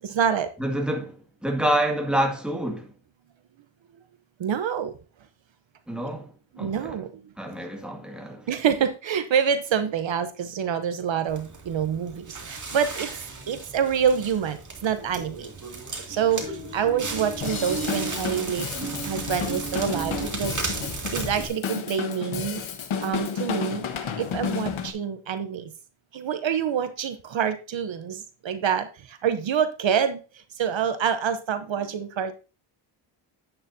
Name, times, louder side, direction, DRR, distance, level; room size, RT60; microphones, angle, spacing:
voice 1, 0.0-0.5 4.4-4.9 6.5-7.3 8.5-13.1 13.5-15.5 16.1-18.7 19.0-22.6 23.0-23.8 24.2-25.7 26.1-32.3, right 8 dB, 65° right, 0.9 m, -27 dB
voice 2, 0.6-2.9 5.9-6.3 6.6-7.0 7.4-8.5, right 1 dB, ahead, 2.1 m, -27 dB
Crackle, 11.3-21.5, right 3 dB, 35° right, 2.4 m, -34 dB
Drum kit / Drum, 17.4-24.9, left 7 dB, 70° left, 1.4 m, -32 dB
10.5 x 9.0 x 2.7 m
wide cardioid pair, 110°, 50 cm